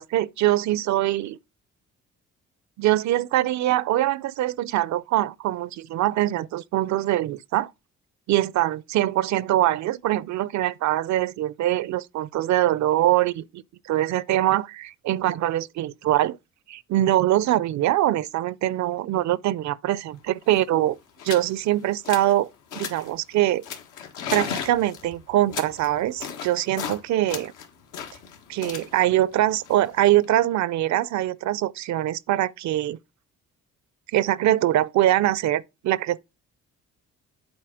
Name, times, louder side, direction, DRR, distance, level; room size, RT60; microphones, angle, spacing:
voice 1, 0.0-1.4 2.8-7.7 8.3-13.6 13.9-16.4 16.7-21.0 21.2-22.5 22.7-23.6 24.3-27.5 28.5-33.0 34.1-36.2, right 14 dB, 70° right, 0.5 m, -23 dB
sound 1, 20.1-20.2 20.4-20.7 21.2-21.5 21.8-22.4 22.7-23.1 23.6-27.0 27.3-30.3, left 7 dB, 90° left, 1.6 m, -35 dB
7.9 x 4.1 x 4.8 m
cardioid pair, 90°, 30 cm